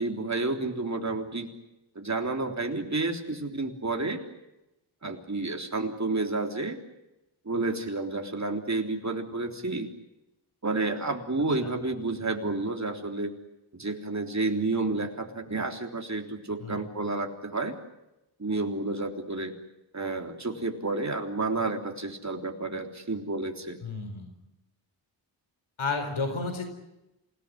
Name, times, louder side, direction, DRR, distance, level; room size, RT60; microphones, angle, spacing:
voice 1, 0.0-1.5 2.0-4.2 5.0-6.8 7.5-9.9 10.6-13.3 13.7-17.7 18.4-19.5 19.9-23.8, right 3 dB, 35° right, 3 dB, 3.5 m, -30 dB
voice 2, 23.8-24.3 25.8-26.6, left 4 dB, 75° left, 7 dB, 4.5 m, -31 dB
28.0 x 18.0 x 9.9 m, 0.93 s
wide cardioid pair, 95°, 49 cm